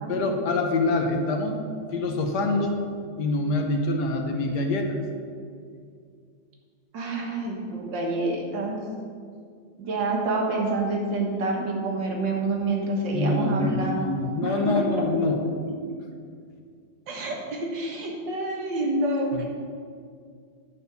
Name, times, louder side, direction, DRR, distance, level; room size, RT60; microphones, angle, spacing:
voice 1, 0.1-1.6 1.9-2.8 3.2-5.0 13.1-15.4 19.3-19.4, left 2 dB, 70° left, 4 dB, 1.5 m, -25 dB
voice 2, 6.9-8.8 9.8-14.8 15.4-15.5 17.1-19.4, right 2 dB, 85° right, 0 dB, 2.1 m, -28 dB
10.5 x 4.3 x 6.9 m, 2.2 s
omnidirectional pair, 1.9 m